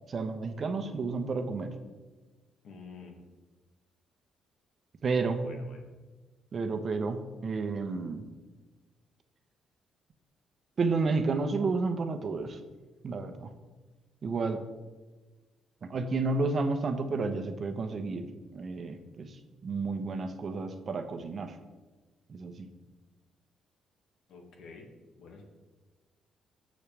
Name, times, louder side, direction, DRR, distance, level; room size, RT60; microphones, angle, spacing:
voice 1, 0.1-1.7 5.0-5.4 6.5-8.2 10.8-12.6 13.0-13.5 14.2-14.6 15.9-18.3 18.5-19.3 19.6-21.5 22.3-22.7, right 3 dB, 45° right, 7 dB, 1.0 m, -31 dB
voice 2, 2.6-3.2 5.4-5.9 24.3-24.9 25.2-25.4, left 4 dB, 70° left, 2 dB, 2.0 m, -48 dB
18.5 x 6.4 x 3.4 m, 1.3 s
cardioid pair, 90°, 0 cm